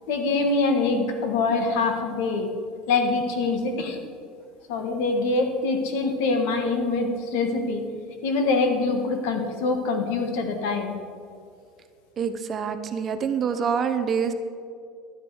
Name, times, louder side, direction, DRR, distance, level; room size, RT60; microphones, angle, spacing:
voice 1, 0.1-2.5 2.9-4.0 4.7-7.8 8.2-11.0, left 3 dB, 70° left, 5 dB, 1.6 m, -24 dB
voice 2, 12.2-14.3, right 6 dB, 25° right, 8 dB, 0.6 m, -26 dB
11.5 x 9.5 x 4.9 m, 2.3 s
cardioid pair, 170°, 0 cm